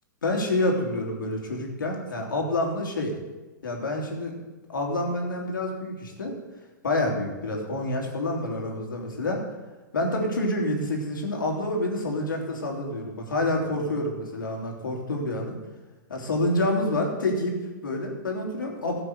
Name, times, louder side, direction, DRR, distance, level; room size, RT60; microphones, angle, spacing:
voice 1, 0.2-3.1 3.6-4.3 4.7-6.4 6.8-9.4 9.9-15.6 16.1-19.0, left 1 dB, 80° left, 1 dB, 3.0 m, -28 dB
13.5 x 6.2 x 8.0 m, 1.2 s
hypercardioid pair, 115°, 11 cm